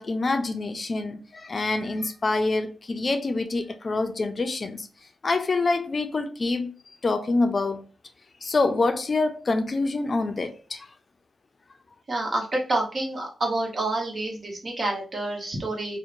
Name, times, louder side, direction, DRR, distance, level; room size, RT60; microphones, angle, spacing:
voice 1, 0.0-4.9 5.2-6.7 7.0-7.8 8.4-10.9, left 3 dB, 50° left, 0.4 m, -26 dB
voice 2, 12.1-16.0, right 2 dB, 50° right, 1.0 m, -28 dB
2.8 x 2.1 x 2.5 m
cardioid pair, 55°, 0 cm